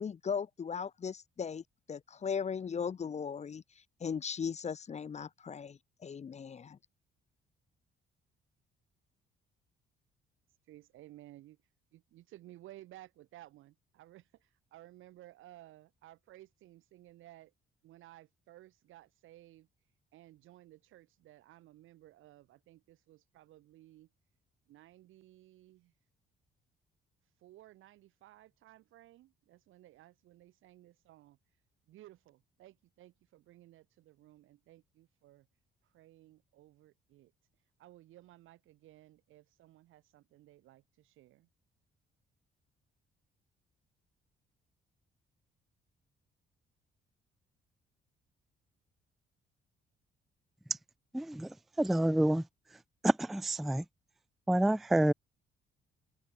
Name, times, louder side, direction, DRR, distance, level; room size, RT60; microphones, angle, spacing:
voice 1, 0.0-3.6 4.0-6.8, left 6 dB, 35° left, 0.6 m, -38 dB
voice 2, 10.6-11.6 11.9-17.5 17.8-19.7 20.1-24.1 24.7-25.9 27.4-31.4 31.9-35.5 35.8-37.3 37.8-41.5, right 15 dB, 85° right, 5.3 m, -57 dB
voice 3, 51.1-51.5 51.8-52.4 53.0-53.8 54.5-55.1, right 1 dB, ahead, 0.3 m, -28 dB
cardioid pair, 90°, 20 cm